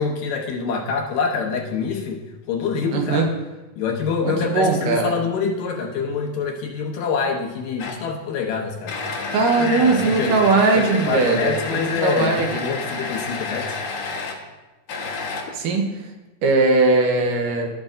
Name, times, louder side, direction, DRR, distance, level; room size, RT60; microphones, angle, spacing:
voice 1, 0.0-3.3 3.8-8.9 9.5-10.3 10.7-13.8, left 5 dB, 80° left, 0 dB, 2.7 m, -26 dB
voice 2, 2.9-3.3 4.2-5.1 9.3-12.6 15.6-15.9 16.4-17.7, right 3 dB, 85° right, 2 dB, 2.7 m, -19 dB
sound 1, 7.8-8.1 8.9-14.4 14.9-15.8, left 4 dB, 65° left, 2.3 m, -30 dB
13.5 x 6.3 x 2.6 m, 1.1 s
omnidirectional pair, 3.8 m